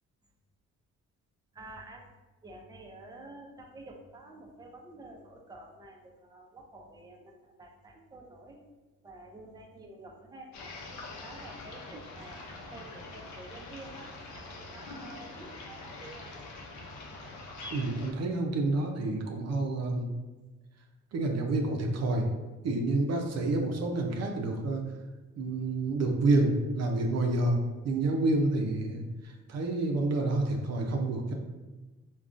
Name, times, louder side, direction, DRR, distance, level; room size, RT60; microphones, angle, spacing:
voice 1, 1.5-2.1 2.4-8.6 9.0-10.5 11.1-16.3, right 2 dB, 15° right, 0 dB, 0.5 m, -49 dB
sound 1, 10.5-18.1, left 2 dB, 75° left, 0.6 m, -44 dB
voice 2, 17.7-20.1 21.1-22.3 22.6-24.9 25.4-31.3, right 2 dB, 60° right, 2 dB, 0.5 m, -28 dB
3.5 x 2.3 x 2.5 m, 1.2 s
cardioid pair, 75°, 29 cm